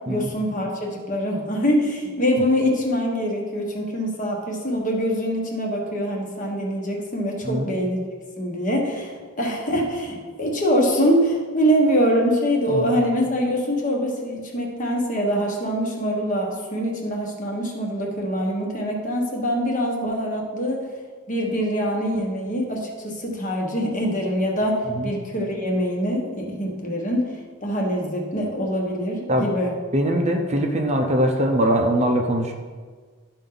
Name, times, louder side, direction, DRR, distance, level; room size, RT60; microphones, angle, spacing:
voice 1, 0.1-20.8 21.3-29.7, equal, 35° left, 0 dB, 1.3 m, -24 dB
voice 2, 29.9-32.5, equal, 30° right, 3 dB, 0.6 m, -22 dB
12.5 x 4.4 x 3.9 m, 1.5 s
head